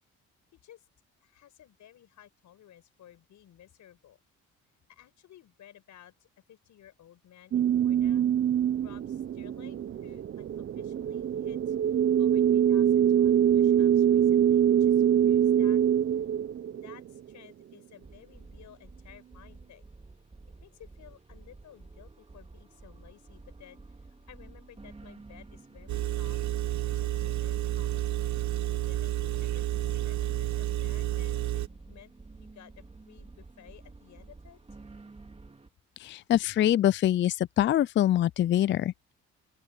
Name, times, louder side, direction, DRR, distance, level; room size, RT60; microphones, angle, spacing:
voice 1, 0.5-0.9 1.2-4.2 4.9-8.2 8.8-15.8 16.1-16.2 16.7-19.8 20.5-28.1 28.9-34.6, left 11 dB, 75° left, 5.1 m, -55 dB
sound 1, 7.5-17.3, right 9 dB, 45° right, 0.6 m, -24 dB
sound 2, 18.0-35.7, right 3 dB, 20° right, 2.3 m, -51 dB
Engine, 25.9-31.7, right 14 dB, 70° right, 1.0 m, -30 dB
voice 2, 36.0-39.1, left 12 dB, 40° left, 0.4 m, -24 dB
open air
cardioid pair, 90°, 30 cm